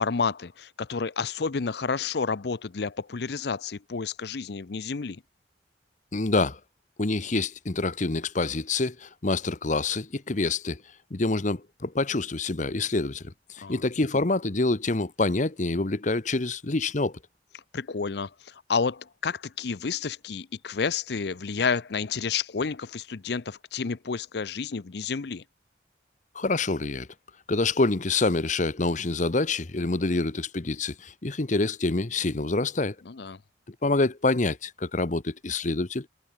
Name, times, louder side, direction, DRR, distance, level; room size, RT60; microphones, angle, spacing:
voice 1, 0.0-5.2 13.6-13.8 17.7-25.4 33.1-33.4, left 5 dB, 60° left, 0.6 m, -30 dB
voice 2, 6.1-6.6 7.0-10.8 11.1-17.2 26.3-27.1 27.5-32.9 33.8-36.1, left 3 dB, 40° left, 1.0 m, -26 dB
head